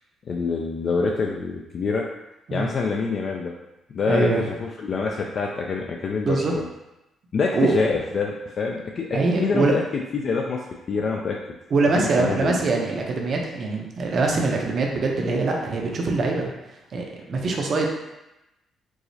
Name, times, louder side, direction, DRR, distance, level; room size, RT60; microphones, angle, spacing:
voice 1, 0.3-2.0 2.5-3.5 3.9-6.7 7.3-9.8 10.1-10.6 10.9-11.4 12.0-12.6, left 4 dB, 50° left, 0 dB, 0.3 m, -26 dB
voice 2, 4.1-4.4 6.3-6.6 7.5-7.9 9.1-9.7 11.7-16.5 16.9-17.9, right 3 dB, 55° right, 0 dB, 0.6 m, -23 dB
4.6 x 2.0 x 2.7 m, 0.94 s
cardioid pair, 90°, 0 cm